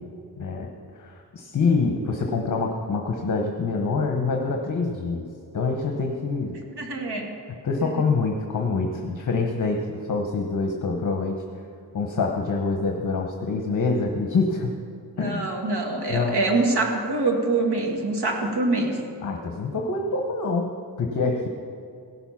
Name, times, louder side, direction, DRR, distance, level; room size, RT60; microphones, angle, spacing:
voice 1, 0.4-5.2 5.5-6.6 7.5-11.4 11.9-14.7 15.2-15.5 16.1-16.4 19.2-21.5, left 4 dB, 45° left, 2 dB, 0.9 m, -26 dB
voice 2, 6.8-7.3 7.8-8.0 15.2-19.0, right 3 dB, 65° right, 2 dB, 1.8 m, -25 dB
16.5 x 7.0 x 5.7 m, 2.5 s
wide cardioid pair, 100°, 43 cm